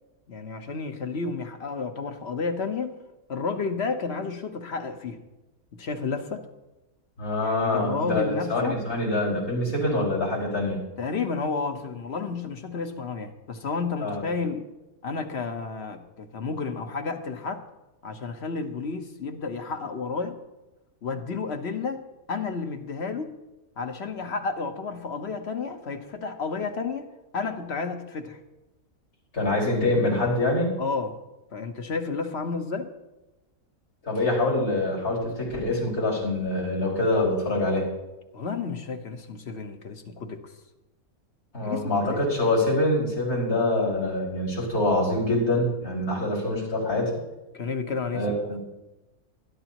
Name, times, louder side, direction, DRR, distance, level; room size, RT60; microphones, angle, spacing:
voice 1, 0.3-3.0 3.3-5.2 5.7-6.5 7.4-8.8 11.0-14.7 15.0-17.6 18.0-20.4 21.0-22.0 22.3-23.4 23.8-27.1 27.3-28.4 30.8-31.2 31.5-32.9 38.3-40.5 41.6-42.3 47.5-48.6, left 4 dB, 50° left, 7 dB, 1.3 m, -31 dB
voice 2, 7.2-10.8 14.0-14.2 29.3-30.7 34.0-37.9 41.5-47.1 48.1-48.6, left 2 dB, 90° left, -5 dB, 5.7 m, -25 dB
21.0 x 11.5 x 3.0 m, 1.0 s
omnidirectional pair, 1.5 m